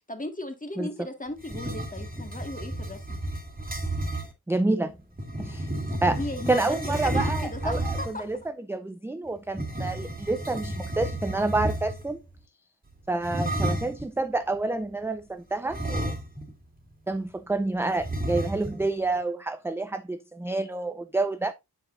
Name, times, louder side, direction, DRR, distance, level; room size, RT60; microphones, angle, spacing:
voice 1, 0.1-3.2 6.1-8.2, left 1 dB, 20° left, 1.8 m, -36 dB
voice 2, 0.8-1.1 4.5-5.0 5.4-5.7 6.0-6.2 6.5-12.2 13.1-16.2 17.1-21.5, right 2 dB, 5° right, 0.4 m, -28 dB
sound 1, 1.4-4.3 5.2-8.3 9.5-12.1 13.2-14.1 15.7-16.6 16.9-17.0 18.0-18.9, right 1 dB, 25° right, 2.2 m, -31 dB
8.1 x 7.6 x 2.5 m
wide cardioid pair, 115°, 38 cm